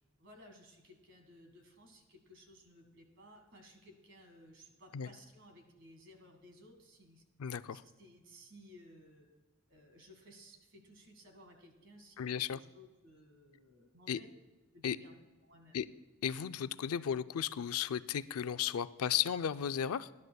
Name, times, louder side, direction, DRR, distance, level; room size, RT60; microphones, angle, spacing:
voice 1, 0.2-7.2 7.7-9.3 9.7-14.3 14.7-15.2 15.4-15.8, equal, 55° right, 5 dB, 1.8 m, -58 dB
voice 2, 7.4-7.8 12.2-12.6 14.1-14.2 14.8-15.0 15.7-15.9 16.2-20.1, left 9 dB, 90° left, 14 dB, 0.4 m, -34 dB
18.5 x 11.0 x 2.3 m, 1.2 s
head